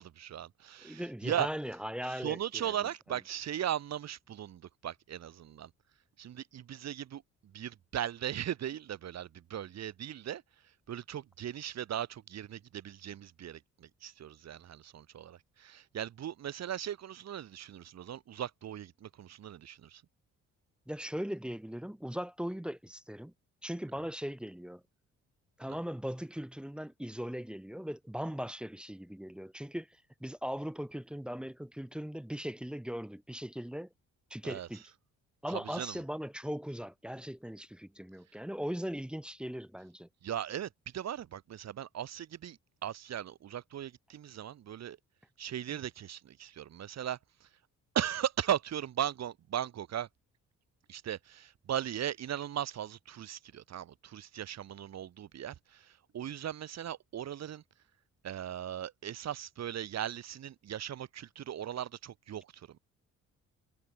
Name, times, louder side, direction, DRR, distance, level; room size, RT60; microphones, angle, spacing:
voice 1, 0.0-1.5 2.1-5.7 6.2-7.2 7.5-10.4 10.9-20.0 34.4-34.7 35.5-36.0 40.2-45.0 45.4-47.2 48.0-50.1 50.9-57.6 58.2-62.8, right 10 dB, 60° right, 1.8 m, -38 dB
voice 2, 0.8-2.7 20.9-23.3 23.6-24.8 25.6-29.9 30.2-33.9 34.3-34.8 35.4-40.1, equal, 5° right, 0.6 m, -39 dB
cardioid pair, 90°, 30 cm